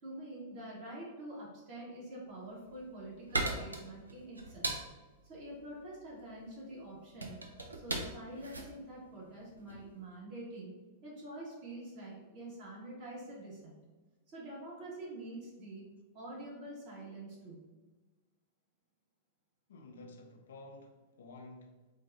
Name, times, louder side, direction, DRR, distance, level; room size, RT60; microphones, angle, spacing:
voice 1, 0.0-4.8 5.3-7.4 7.8-10.7 11.0-13.8 14.3-15.9 16.1-17.6, right 1 dB, 45° right, 1.4 m, -46 dB
sound 1, 2.5-9.9, right 2 dB, 80° right, 0.4 m, -40 dB
voice 2, 19.7-21.9, left 2 dB, 65° left, 0.4 m, -52 dB
3.9 x 2.3 x 2.5 m
figure-of-eight pair, 95°, 0 cm